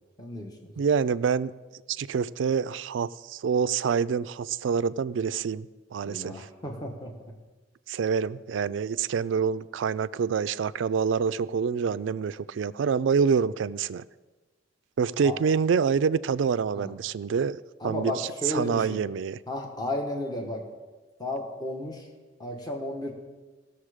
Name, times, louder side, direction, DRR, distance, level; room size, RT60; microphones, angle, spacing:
voice 1, 0.2-0.7 6.0-7.1 15.2-15.3 16.7-16.9 17.8-19.0 19.5-20.6 21.2-22.1 22.4-23.1, left 1 dB, 20° left, 1.2 m, -33 dB
voice 2, 0.8-1.5 1.9-6.5 7.9-14.0 15.0-17.6 17.8-19.4, right 6 dB, 75° right, 0.4 m, -26 dB
17.0 x 6.9 x 5.0 m
head